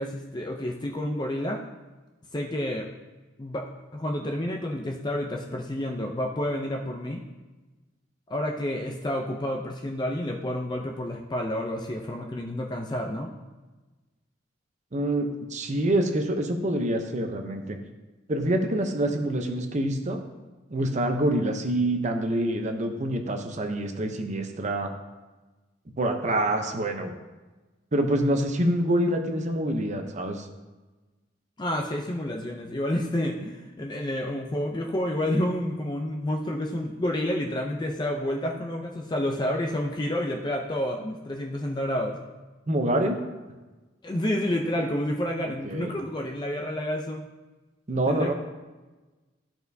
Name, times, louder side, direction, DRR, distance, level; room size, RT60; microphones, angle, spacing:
voice 1, 0.0-1.6 2.3-2.9 3.4-3.7 3.9-7.2 8.3-13.3 31.6-42.2 44.0-47.2 48.1-48.3, left 1 dB, 25° left, 1 dB, 0.5 m, -29 dB
voice 2, 14.9-17.8 18.3-20.2 20.7-24.9 26.0-27.1 27.9-30.5 42.7-43.2 45.4-46.0 47.9-48.3, right 1 dB, 40° right, 5 dB, 0.7 m, -26 dB
12.5 x 4.4 x 2.7 m, 1.2 s
head